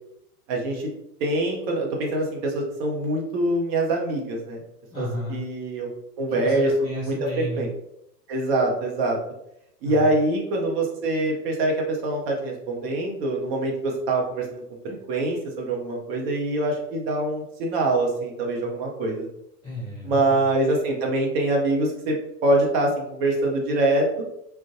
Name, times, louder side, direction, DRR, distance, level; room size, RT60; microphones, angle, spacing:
voice 1, 0.5-0.9 1.2-4.6 5.0-5.9 6.2-6.7 7.4-7.7 8.3-9.2 9.8-19.3 20.0-22.2 22.4-24.2, right 2 dB, 40° right, 0 dB, 0.7 m, -24 dB
voice 2, 4.9-5.4 6.3-7.7 9.8-10.1 19.6-20.5, left 1 dB, 10° left, -12 dB, 0.3 m, -33 dB
2.5 x 2.2 x 2.4 m, 0.79 s
figure-of-eight pair, 100°, 47 cm